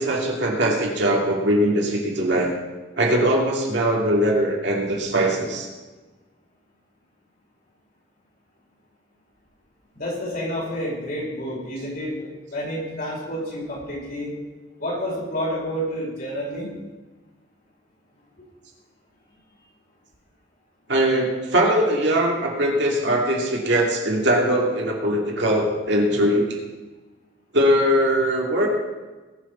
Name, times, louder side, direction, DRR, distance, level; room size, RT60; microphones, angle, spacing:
voice 1, 0.0-2.5 3.0-5.7 20.9-26.6 27.5-28.7, right 1 dB, 65° right, -1 dB, 2.6 m, -21 dB
voice 2, 9.9-14.3 14.8-16.7, equal, 50° left, -4 dB, 5.2 m, -29 dB
20.0 x 6.7 x 5.6 m, 1.2 s
head